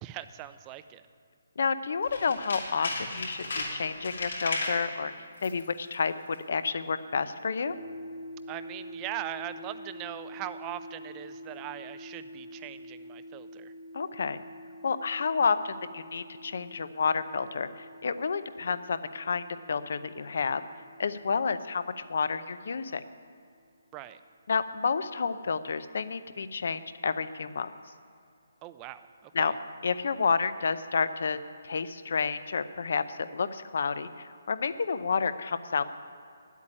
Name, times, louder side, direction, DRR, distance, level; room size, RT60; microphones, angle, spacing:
voice 1, 0.0-1.0 8.5-13.7 23.9-24.2 28.6-29.5, right 13 dB, 15° right, 12 dB, 0.4 m, -40 dB
voice 2, 1.6-5.1 5.4-7.7 13.9-14.4 14.8-20.6 21.0-21.8 22.1-23.0 24.5-27.7 29.3-29.5 29.8-31.4 31.6-35.8, left 5 dB, 60° left, 13 dB, 0.6 m, -30 dB
Tools, 2.0-4.8 5.3-5.7 5.9-6.0, left 2 dB, 75° left, 3.4 m, -35 dB
sound 1, 7.6-23.2, equal, 65° right, 1.0 m, -47 dB
9.9 x 8.4 x 9.9 m, 2.4 s
hypercardioid pair, 170°, 0 cm